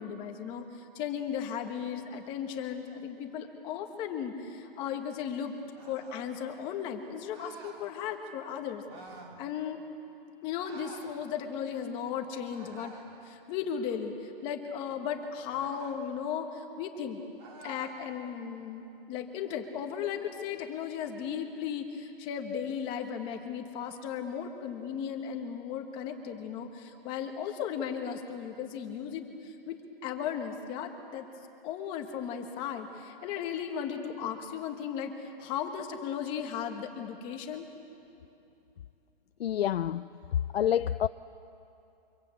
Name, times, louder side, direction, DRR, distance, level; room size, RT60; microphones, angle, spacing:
voice 1, 0.0-5.6 5.9-8.8 9.4-9.8 10.4-12.9 13.2-17.2 17.6-31.3 31.6-37.7, left 8 dB, 15° left, 5 dB, 1.3 m, -36 dB
sound 1, 5.7-6.3 7.3-7.8 8.9-9.4 10.6-11.1 12.5-13.1 15.4-16.0 17.4-18.0, right 3 dB, 25° right, 3.0 m, -49 dB
voice 2, 39.4-40.0 40.5-41.1, left 10 dB, 90° left, 11 dB, 0.6 m, -27 dB
25.5 x 25.5 x 8.4 m, 2.8 s
hypercardioid pair, 175°, 29 cm